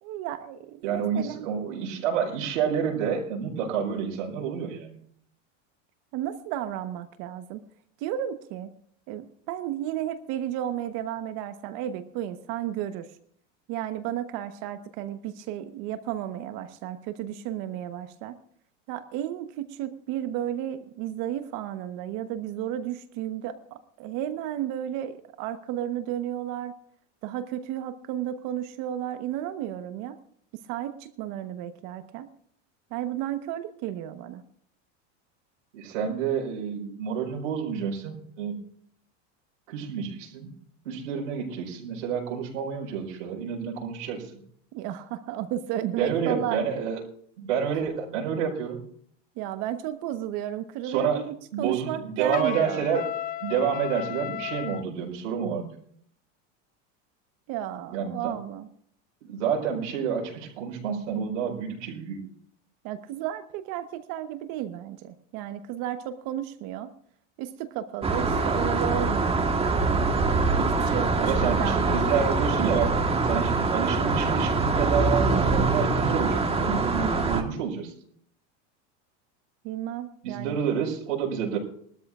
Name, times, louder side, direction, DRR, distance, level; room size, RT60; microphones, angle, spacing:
voice 1, 0.0-1.5 6.1-7.6 8.0-8.7 9.1-13.1 13.7-18.4 18.9-26.7 27.2-30.2 30.7-32.3 32.9-34.4 44.7-46.6 47.7-47.8 49.4-52.9 57.5-58.7 62.8-66.9 67.4-70.3 70.6-72.2 79.6-80.6, right 11 dB, 60° right, 10 dB, 1.2 m, -33 dB
voice 2, 0.8-5.0 35.7-38.6 39.7-40.5 40.8-44.4 46.0-47.0 47.4-48.8 50.8-51.2 51.5-53.1 53.4-55.8 57.9-58.3 59.2-62.2 71.2-72.9 73.2-77.9 80.2-81.6, right 7 dB, 85° right, -2 dB, 4.8 m, -29 dB
Trumpet, 52.3-54.9, left 12 dB, 25° left, 0.4 m, -34 dB
sound 1, 68.0-77.4, right 3 dB, 15° right, 1.4 m, -24 dB
21.5 x 13.0 x 2.5 m, 0.64 s
supercardioid pair, 130°, 37 cm